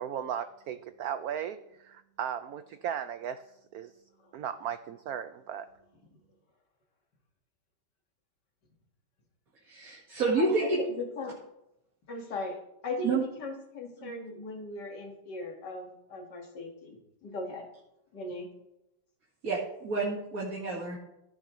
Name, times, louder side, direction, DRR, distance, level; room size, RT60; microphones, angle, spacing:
voice 1, 0.0-3.4 3.7-3.9 4.3-5.7, right 9 dB, 90° right, 11 dB, 0.8 m, -36 dB
voice 2, 9.6-10.8 13.0-13.2 14.0-14.1 19.4-21.0, right 3 dB, 45° right, -4 dB, 2.1 m, -29 dB
voice 3, 10.4-11.3 12.1-12.6 12.8-17.7 18.1-18.5, left 2 dB, 60° left, 2 dB, 2.4 m, -38 dB
14.5 x 9.8 x 3.1 m, 0.88 s
omnidirectional pair, 2.1 m